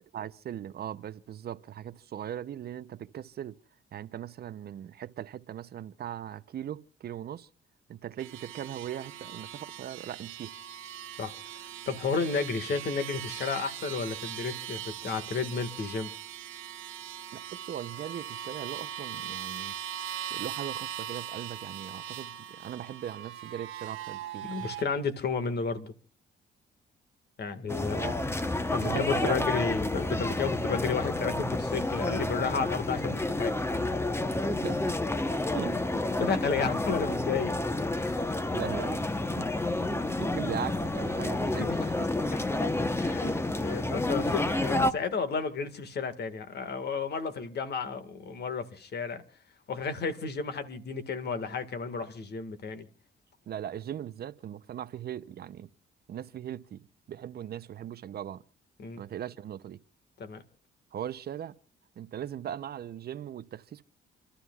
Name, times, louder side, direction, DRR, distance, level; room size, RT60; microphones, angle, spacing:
voice 1, 0.1-3.6 3.9-7.5 7.9-10.5 17.3-19.7 20.3-24.5 27.8-28.1 28.8-29.4 34.2-34.9 35.5-35.8 38.5-39.0 39.4-39.5 39.9-41.9 53.5-55.7 56.1-58.4 59.0-59.8 60.9-61.6 62.0-63.8, right 10 dB, 55° right, 0.6 m, -39 dB
sound 1, 8.2-24.8, right 10 dB, 90° right, 1.3 m, -40 dB
voice 2, 11.2-16.1 24.4-25.9 27.4-28.0 28.7-33.5 36.2-38.3 41.6-41.9 42.3-42.5 42.9-49.2 49.7-52.9 58.8-59.0 60.2-60.4, left 5 dB, 55° left, 1.7 m, -32 dB
sound 2, 27.7-44.9, left 2 dB, 10° left, 0.8 m, -30 dB
28.5 x 13.0 x 2.3 m
cardioid pair, 90°, 20 cm